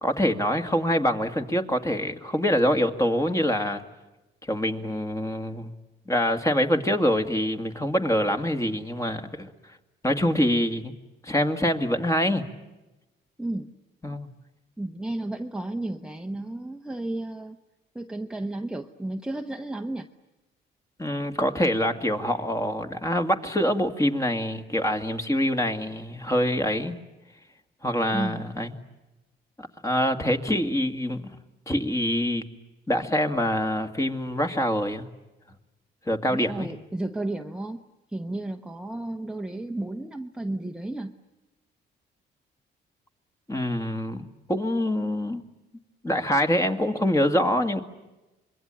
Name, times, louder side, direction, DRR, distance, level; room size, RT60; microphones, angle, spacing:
voice 1, 0.0-3.8 4.4-5.7 6.1-9.5 10.0-10.9 11.2-12.5 14.0-14.3 21.0-27.0 27.8-28.7 29.6-31.4 31.7-32.4 32.9-35.1 36.1-36.7 43.5-45.4 46.0-47.8, equal, 15° left, 5 dB, 2.2 m, -25 dB
voice 2, 13.4-13.8 14.8-17.6 17.9-20.1 28.1-28.5 36.3-37.8 38.1-41.1, right 2 dB, 5° right, 4 dB, 1.1 m, -33 dB
26.0 x 22.5 x 9.1 m, 1.0 s
cardioid pair, 90°, 20 cm